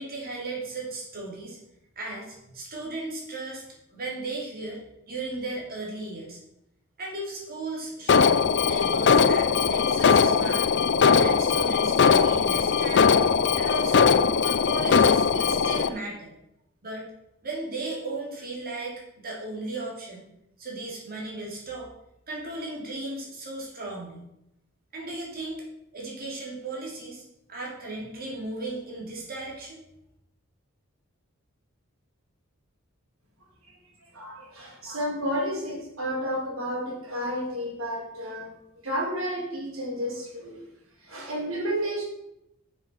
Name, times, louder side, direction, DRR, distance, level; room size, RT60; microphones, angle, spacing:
voice 1, 0.0-1.6 2.0-3.6 3.9-4.8 5.1-6.4 7.0-10.7 11.1-13.0 13.6-14.1 14.4-16.3 16.8-17.1 17.4-20.2 20.6-21.9 22.3-24.2 24.9-25.6 25.9-27.2 27.5-29.8, right 2 dB, 45° right, -3 dB, 2.9 m, -36 dB
Alarm, 8.1-15.9, left 6 dB, 55° left, 0.5 m, -20 dB
voice 2, 33.6-38.5 38.8-40.6 41.0-42.0, equal, 75° right, -3 dB, 3.9 m, -31 dB
6.9 x 6.6 x 5.8 m, 0.83 s
head